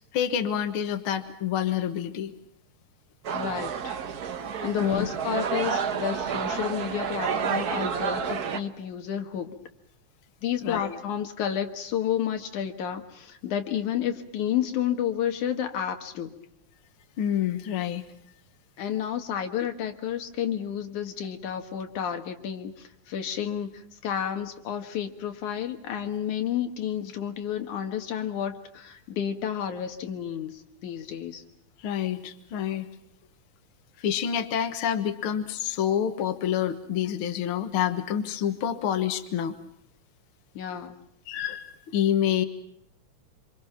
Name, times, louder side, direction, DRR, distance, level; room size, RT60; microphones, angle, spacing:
voice 1, 0.1-2.3 4.8-5.1 10.6-11.0 17.2-18.1 31.8-32.9 34.0-39.6 41.3-42.4, left 9 dB, 55° left, 7 dB, 2.0 m, -27 dB
sound 1, 3.2-8.6, right 6 dB, 65° right, 0.9 m, -30 dB
voice 2, 3.3-4.0 4.6-9.5 10.4-16.3 18.8-30.5 30.8-31.4 40.5-41.0, left 9 dB, 90° left, 5 dB, 3.0 m, -31 dB
27.0 x 26.5 x 5.9 m, 0.75 s
omnidirectional pair, 3.3 m